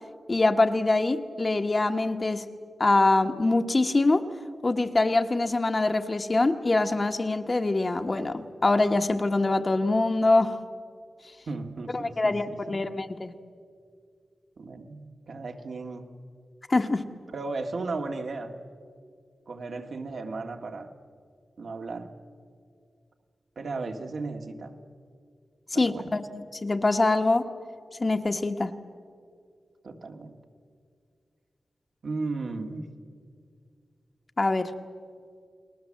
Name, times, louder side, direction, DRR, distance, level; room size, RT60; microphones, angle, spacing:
voice 1, 0.3-2.4 2.8-4.2 4.6-10.6 11.9-13.3 16.7-17.0 25.7-27.5 28.0-28.7 34.4-34.7, left 2 dB, 30° left, 6 dB, 1.1 m, -24 dB
voice 2, 11.5-12.9 14.6-16.1 17.3-18.6 19.5-20.9 21.6-22.1 23.6-24.8 25.7-26.1 29.8-30.4 32.0-32.9, right 3 dB, 70° right, 4 dB, 1.8 m, -35 dB
30.0 x 20.5 x 7.5 m, 2.2 s
wide cardioid pair, 150°, 0 cm